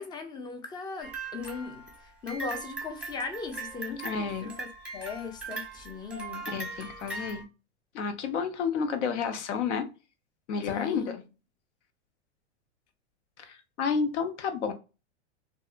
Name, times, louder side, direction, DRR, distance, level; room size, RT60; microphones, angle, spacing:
voice 1, 0.0-1.8 2.2-4.7 4.9-6.5 10.7-11.1, left 4 dB, 15° left, 0.4 m, -38 dB
sound 1, 1.0-7.4, right 3 dB, 5° right, 0.8 m, -40 dB
voice 2, 4.0-4.5 6.5-7.5 7.9-9.9 10.5-11.2 13.4-14.7, left 6 dB, 75° left, 0.8 m, -30 dB
2.6 x 2.3 x 2.4 m
hypercardioid pair, 120°, 35 cm